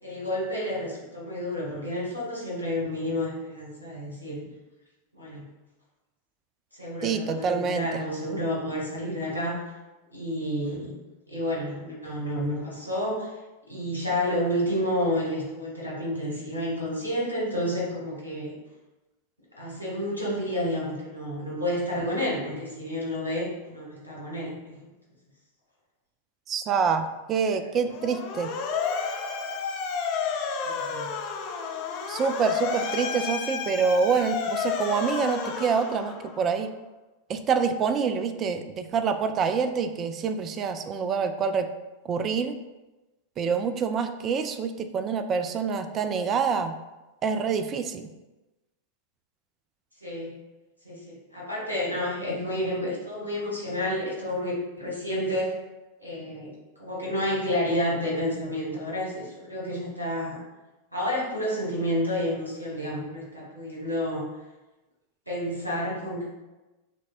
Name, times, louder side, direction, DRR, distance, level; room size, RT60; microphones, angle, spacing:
voice 1, 0.0-4.5 5.1-5.5 6.7-9.6 10.1-10.9 11.3-13.3 13.7-18.6 19.6-24.9 30.6-31.2 50.0-50.4 50.8-55.5 56.0-60.4 60.9-64.3 65.3-66.4, left 1 dB, 85° right, -6 dB, 1.3 m, -30 dB
voice 2, 7.0-8.0 26.5-28.5 32.1-36.7 37.3-41.7 42.0-42.6 43.4-46.8 47.2-48.1, right 6 dB, 30° right, 9 dB, 0.3 m, -26 dB
Motor vehicle (road) / Siren, 27.9-36.5, left 5 dB, 45° left, 0.4 m, -31 dB
6.0 x 2.1 x 2.4 m, 1.1 s
figure-of-eight pair, 90°, 0 cm